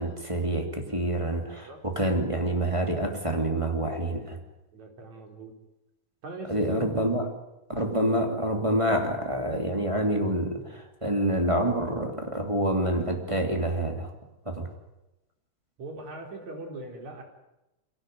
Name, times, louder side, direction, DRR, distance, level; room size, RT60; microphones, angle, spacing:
voice 1, 0.0-4.4 6.5-7.3 7.7-14.1 14.5-14.7, right 1 dB, 10° right, 3 dB, 2.6 m, -27 dB
voice 2, 4.7-5.5 6.2-6.8 7.7-7.8 15.8-17.2, right 2 dB, 65° right, 2 dB, 5.3 m, -41 dB
24.0 x 17.5 x 9.5 m, 0.96 s
omnidirectional pair, 3.5 m